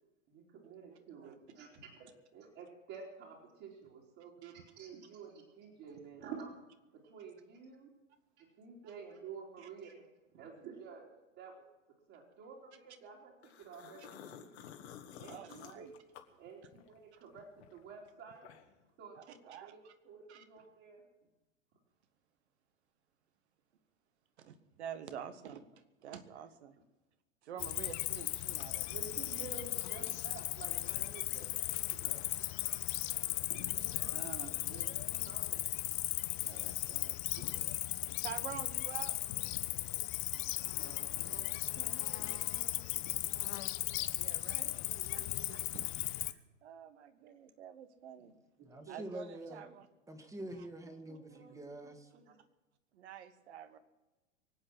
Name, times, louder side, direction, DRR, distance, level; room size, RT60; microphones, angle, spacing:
voice 1, 0.3-6.5 6.9-7.9 8.4-10.1 10.3-11.7 12.1-14.5 15.2-15.5 15.7-15.9 16.4-18.5 19.0-21.0 26.1-26.2 27.5-27.6 28.8-32.3 33.5-34.2 34.6-35.6 37.4-37.6 39.6-39.8 40.5-43.9 44.9-45.6 48.2-48.3 48.6-49.2 51.1-51.5 52.3-52.4, right 5 dB, 40° right, -6 dB, 3.6 m, -51 dB
sound 1, 13.4-17.0 17.4-18.9, left 9 dB, 55° left, 2.0 m, -52 dB
voice 2, 15.3-15.9 19.1-19.9 20.3-20.4 24.4-26.8 27.4-29.1 34.1-34.8 36.4-37.2 38.2-39.1 44.2-44.8 45.1-45.9 46.2-48.3 48.9-49.9 52.9-53.8, right 9 dB, 60° right, 10 dB, 1.6 m, -48 dB
Cricket, 27.6-46.3, left 18 dB, 40° left, 0.9 m, -37 dB
voice 3, 48.6-49.6 50.1-52.1, right 1 dB, 10° right, 6 dB, 1.9 m, -46 dB
24.0 x 8.8 x 6.1 m, 1.1 s
figure-of-eight pair, 95°, 38 cm